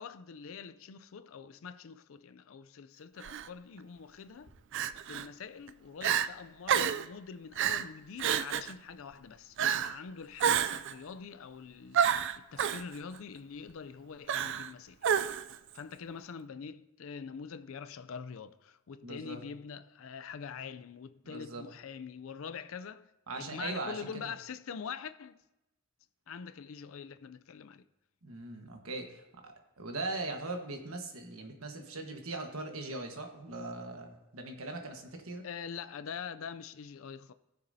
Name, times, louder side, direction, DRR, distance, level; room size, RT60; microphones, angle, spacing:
voice 1, 0.0-4.5 5.1-12.1 12.4-15.2 15.7-23.1 23.4-25.4 26.3-27.9 35.4-37.3, left 6 dB, 70° left, 0.4 m, -44 dB
Crying sobbing, 3.2-3.5 4.7-5.3 5.7-5.8 6.0-6.3 6.7-7.1 7.6-7.9 8.2-8.7 9.6-10.0 10.4-10.9 11.9-12.8 14.3-14.7 15.0-15.6, right 8 dB, 60° right, 0.4 m, -29 dB
voice 2, 19.0-19.4 21.2-21.6 23.3-24.3 28.2-35.5, right 2 dB, 80° right, 1.4 m, -40 dB
19.0 x 6.8 x 2.7 m
head